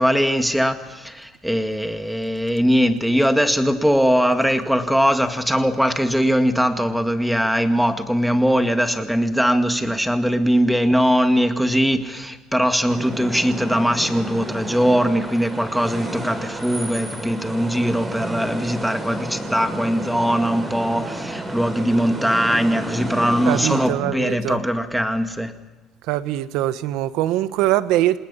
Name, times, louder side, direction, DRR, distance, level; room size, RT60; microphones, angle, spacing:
voice 1, 0.0-25.5, equal, ahead, 7 dB, 2.0 m, -20 dB
sound 1, 12.9-23.9, right 1 dB, 20° right, 7.1 m, -31 dB
voice 2, 23.5-24.6 26.1-28.2, right 14 dB, 80° right, 13 dB, 1.1 m, -22 dB
28.0 x 20.0 x 5.6 m, 1.2 s
cardioid pair, 105°, 0 cm